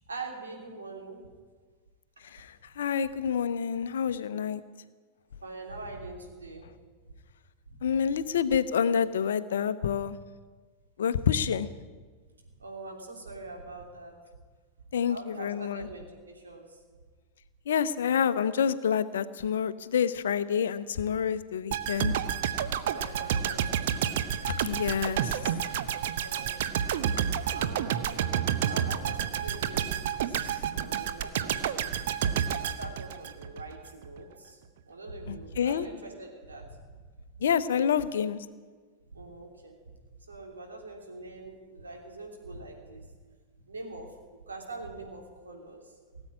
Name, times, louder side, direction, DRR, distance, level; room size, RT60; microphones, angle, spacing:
voice 1, 0.1-1.2 3.4-3.5 5.4-6.7 7.7-7.8 12.6-14.1 15.1-16.8 22.8-23.9 24.3-24.6 25.8-26.6 27.5-31.9 32.6-34.6 34.9-36.8 39.1-39.8 40.3-43.0 43.7-45.8, right 2 dB, 75° right, 1 dB, 3.1 m, -43 dB
voice 2, 2.8-4.6 7.8-10.2 11.0-11.7 14.9-15.9 17.7-22.1 24.5-25.4 35.3-35.9 37.4-38.4, left 8 dB, 65° left, 14 dB, 0.7 m, -28 dB
sound 1, 21.7-33.7 34.0-34.2, right 9 dB, 55° right, 0.8 m, -30 dB
18.0 x 8.1 x 9.6 m, 1.5 s
figure-of-eight pair, 90°, 0 cm